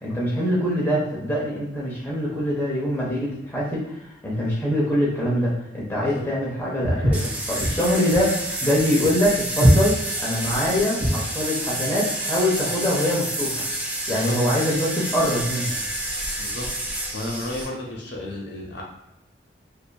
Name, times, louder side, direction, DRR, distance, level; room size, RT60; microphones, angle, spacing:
voice 1, 0.0-13.7 14.1-15.8, equal, 10° left, -6 dB, 0.7 m, -24 dB
Walk footsteps, 6.8-11.3, equal, 50° right, 1.2 m, -22 dB
sound 1, 7.1-17.7, right 1 dB, 10° right, 0.3 m, -29 dB
voice 2, 16.4-16.7 17.1-18.8, left 1 dB, 75° left, -1 dB, 0.6 m, -32 dB
2.8 x 2.5 x 2.2 m, 0.88 s
head